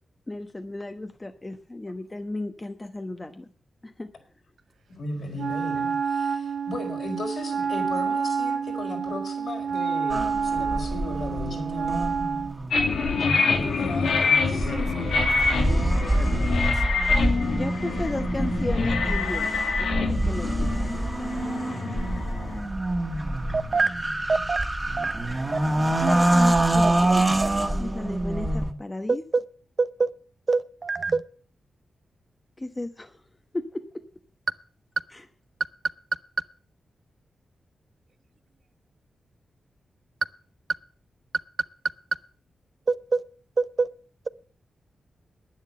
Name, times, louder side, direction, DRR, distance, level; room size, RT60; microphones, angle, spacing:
voice 1, 0.3-3.5 3.8-4.1 17.5-19.5 19.8-20.9 26.0-27.2 27.8-29.2 32.6-33.2 33.5-33.8 35.1-35.2, left 2 dB, 20° left, 1.1 m, -34 dB
voice 2, 4.9-12.1 13.1-14.7, left 2 dB, 65° left, 4.8 m, -36 dB
Wind instrument woodwind instrument, 5.3-12.6, right 6 dB, 90° right, 1.8 m, -28 dB
sound 1, 10.1-28.7, right 1 dB, 20° right, 1.8 m, -26 dB
sound 2, 12.7-22.6, left 4 dB, 85° left, 2.2 m, -26 dB
voice 3, 14.6-16.7 23.5-23.9 24.3-24.6 25.0-25.1 26.8-26.9 29.1-29.4 29.8-30.1 30.5-31.2 42.9-43.2 43.6-43.9, right 4 dB, 45° right, 0.7 m, -26 dB
10.5 x 9.7 x 7.5 m
cardioid pair, 80°, 0 cm